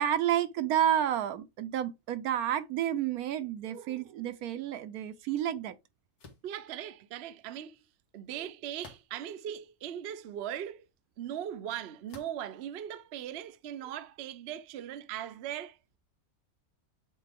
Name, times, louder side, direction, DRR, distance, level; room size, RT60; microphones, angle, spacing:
voice 1, 0.0-5.8 8.4-8.5, right 10 dB, 80° right, 1.1 m, -30 dB
sound 1, 6.2-6.5 8.8-9.3 10.1-10.2 12.1-12.5, left 4 dB, 80° left, 1.9 m, -51 dB
voice 2, 6.4-7.8 8.1-10.9 11.2-15.8, right 10 dB, 55° right, 0.7 m, -39 dB
7.4 x 3.9 x 3.5 m
omnidirectional pair, 1.6 m